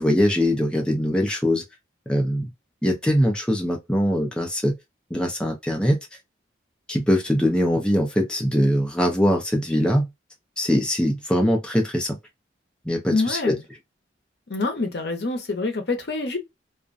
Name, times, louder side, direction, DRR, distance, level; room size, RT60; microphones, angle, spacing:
voice 1, 0.0-1.6 2.1-2.5 2.8-4.7 5.1-6.0 6.9-10.1 10.6-12.2 12.9-13.5, equal, 5° left, 0.4 m, -22 dB
voice 2, 13.1-13.6 14.5-16.4, left 3 dB, 65° left, 0.6 m, -26 dB
2.4 x 2.1 x 2.4 m
head